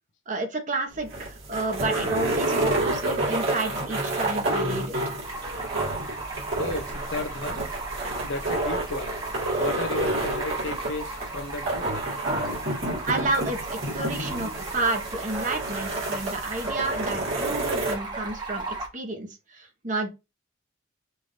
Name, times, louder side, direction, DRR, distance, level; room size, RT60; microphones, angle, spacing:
voice 1, 0.3-5.0 13.1-20.1, right 2 dB, 40° right, 1.2 m, -30 dB
sound 1, 0.9-17.9, right 2 dB, 75° right, 2.5 m, -29 dB
Stream, 5.2-18.9, right 3 dB, 20° right, 1.2 m, -37 dB
voice 2, 6.6-7.6 8.2-9.1 9.6-12.0, left 2 dB, 65° left, 0.9 m, -33 dB
5.6 x 2.7 x 3.3 m
head